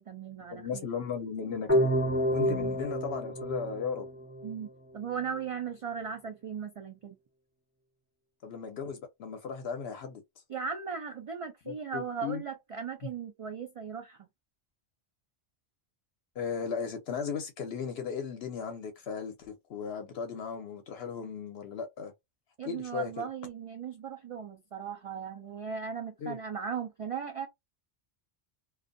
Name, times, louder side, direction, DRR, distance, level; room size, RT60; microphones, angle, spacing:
voice 1, 0.0-0.8 2.5-2.8 4.4-7.1 10.5-14.2 22.6-27.5, right 6 dB, 65° right, 0.3 m, -37 dB
voice 2, 0.5-1.9 2.3-4.1 8.4-10.4 11.7-12.4 13.0-13.1 16.4-22.1 22.6-23.3 26.2-26.4, left 6 dB, 75° left, 0.8 m, -36 dB
sound 1, 1.7-4.7, equal, 10° left, 1.3 m, -29 dB
2.5 x 2.3 x 2.5 m
omnidirectional pair, 1.1 m